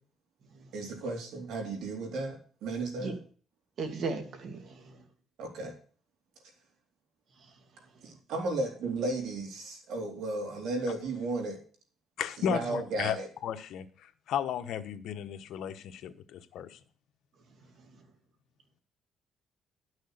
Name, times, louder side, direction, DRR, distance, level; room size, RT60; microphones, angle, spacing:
voice 1, 0.7-3.2 5.4-5.7 8.0-11.6 12.4-13.3, right 2 dB, 80° right, 3 dB, 3.8 m, -34 dB
voice 2, 3.8-5.0, right 4 dB, 55° right, 6 dB, 2.5 m, -36 dB
voice 3, 12.2-13.2 13.4-16.8, left 9 dB, 75° left, 8 dB, 1.2 m, -34 dB
11.5 x 6.5 x 6.5 m, 0.42 s
cardioid pair, 120°, 0 cm